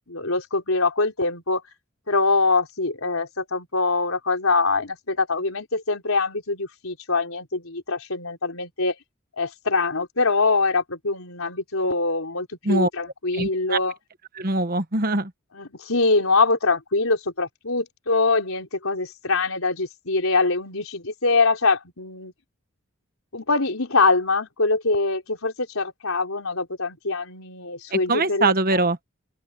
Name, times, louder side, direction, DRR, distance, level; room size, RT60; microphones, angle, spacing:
voice 1, 0.1-1.6 2.1-9.0 9.4-13.9 15.5-22.3 23.3-28.8, left 3 dB, 80° left, 4.0 m, -23 dB
voice 2, 13.3-13.8 14.4-15.3 27.9-29.1, right 2 dB, 45° right, 1.3 m, -23 dB
open air
head